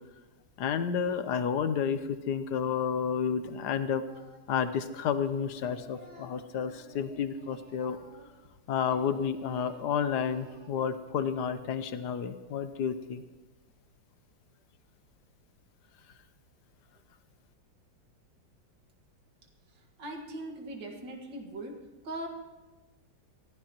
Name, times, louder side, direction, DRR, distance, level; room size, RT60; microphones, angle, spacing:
voice 1, 0.6-4.0 4.5-8.0 8.7-13.2, left 7 dB, 70° left, 10 dB, 1.3 m, -31 dB
Singing, 4.1-4.6 4.9-8.5 8.8-10.9, right 1 dB, 60° right, 3.4 m, -55 dB
voice 2, 20.0-21.7 22.0-22.3, right 1 dB, 80° right, 2 dB, 2.5 m, -39 dB
22.5 x 14.5 x 3.0 m, 1.2 s
omnidirectional pair, 2.0 m